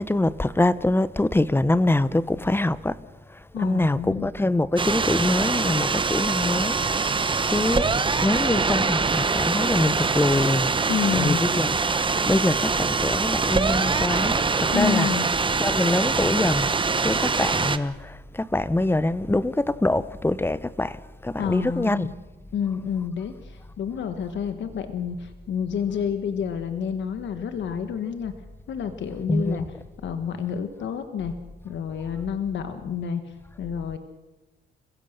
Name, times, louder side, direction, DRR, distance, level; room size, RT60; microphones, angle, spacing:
voice 1, 0.0-3.0 3.3-15.1 15.6-16.7 17.0-22.1 29.3-29.7, left 2 dB, 10° left, 0.8 m, -24 dB
voice 2, 3.5-4.3 10.9-11.4 14.7-15.3 21.4-22.1 22.5-28.3 28.7-29.6 30.0-31.3 31.6-34.0, left 7 dB, 65° left, 1.5 m, -29 dB
sound 1, 4.8-17.8, right 4 dB, 25° right, 1.1 m, -24 dB
28.0 x 16.0 x 6.7 m
cardioid pair, 90°, 20 cm